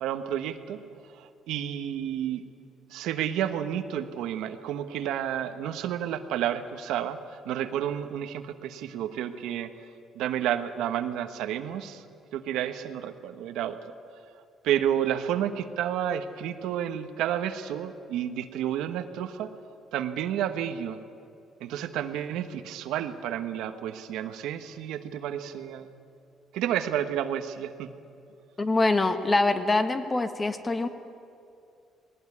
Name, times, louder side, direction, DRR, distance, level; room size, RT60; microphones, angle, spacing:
voice 1, 0.0-0.8 1.1-2.4 2.9-7.2 7.4-9.7 10.1-12.0 12.3-13.8 14.6-19.5 19.9-21.0 21.6-25.9 26.5-27.9, right 10 dB, 85° right, 9 dB, 1.2 m, -30 dB
voice 2, 28.6-30.9, left 2 dB, 20° left, 9 dB, 1.4 m, -24 dB
19.5 x 18.0 x 9.7 m, 2.5 s
cardioid pair, 110°, 0 cm